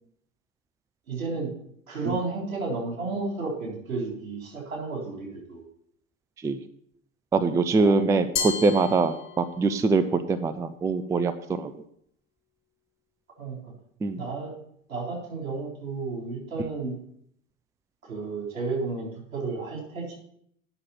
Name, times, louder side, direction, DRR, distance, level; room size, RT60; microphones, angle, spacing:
voice 1, 1.1-1.5 1.9-5.6 7.8-8.0 13.4-13.7 14.1-14.5 14.9-17.0 18.0-20.1, right 3 dB, 75° right, -2 dB, 4.1 m, -32 dB
voice 2, 7.3-11.7 14.0-14.2, right 4 dB, 10° right, 11 dB, 0.4 m, -23 dB
Glass, 8.4-9.8, left 6 dB, 70° left, 1.5 m, -32 dB
9.9 x 6.5 x 5.6 m, 0.68 s
figure-of-eight pair, 85°, 40 cm